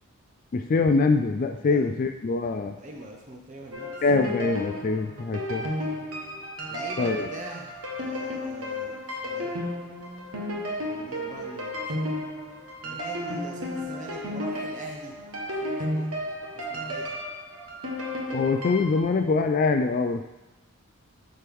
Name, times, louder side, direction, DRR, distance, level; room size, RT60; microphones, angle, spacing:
voice 1, 0.5-2.8 4.0-5.7 7.0-7.3 18.3-20.2, left 3 dB, 40° left, 7 dB, 0.3 m, -24 dB
voice 2, 2.8-4.0 5.7-5.9 6.7-9.6 10.9-12.2 12.8-15.1 15.5-16.1 16.5-17.2, right 1 dB, 35° right, 0 dB, 0.9 m, -42 dB
sound 1, 3.7-19.0, left 1 dB, 80° right, 1.2 m, -33 dB
8.1 x 4.5 x 3.5 m, 0.99 s
head